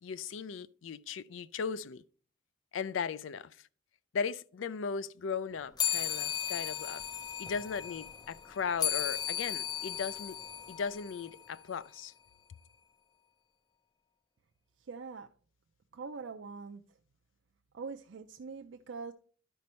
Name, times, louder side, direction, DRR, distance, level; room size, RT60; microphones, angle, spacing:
voice 1, 0.0-2.0 2.7-3.6 4.1-7.0 7.4-10.4 10.7-12.1, left 6 dB, 85° left, 0.4 m, -37 dB
sound 1, 5.8-11.6, left 9 dB, 20° left, 0.4 m, -36 dB
voice 2, 14.8-15.3 15.9-17.0 17.7-19.1, right 4 dB, 65° right, 0.5 m, -43 dB
11.0 x 5.2 x 4.3 m
head